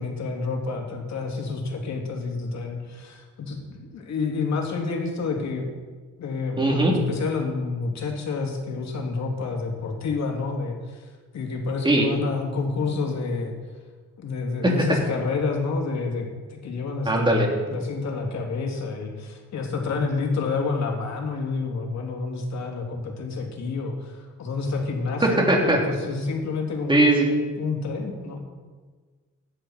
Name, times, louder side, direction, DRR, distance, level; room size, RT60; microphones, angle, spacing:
voice 1, 0.0-5.7 6.2-13.5 14.2-27.1 27.6-28.4, left 4 dB, 65° left, 1 dB, 3.0 m, -29 dB
voice 2, 6.6-6.9 11.8-12.1 14.6-14.7 17.1-17.5 25.2-25.8 26.9-27.4, right 2 dB, 15° right, -1 dB, 3.5 m, -19 dB
15.5 x 11.0 x 4.6 m, 1.4 s
cardioid pair, 90°, 30 cm